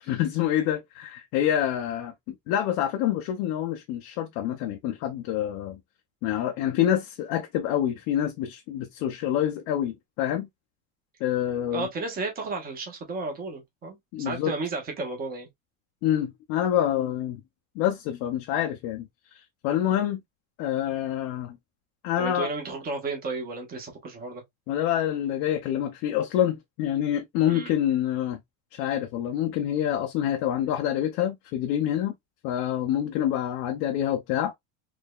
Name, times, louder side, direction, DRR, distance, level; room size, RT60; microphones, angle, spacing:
voice 1, 0.0-5.8 6.2-10.5 11.2-11.9 14.1-14.5 16.0-17.4 17.8-20.2 20.6-21.6 22.0-22.5 24.7-28.4 28.7-32.1 32.4-34.5, left 11 dB, 40° left, 0.4 m, -27 dB
voice 2, 11.7-15.5 22.2-24.4 27.5-27.7, right 3 dB, 20° right, 1.0 m, -33 dB
3.5 x 3.2 x 2.2 m
cardioid pair, 175°, 40 cm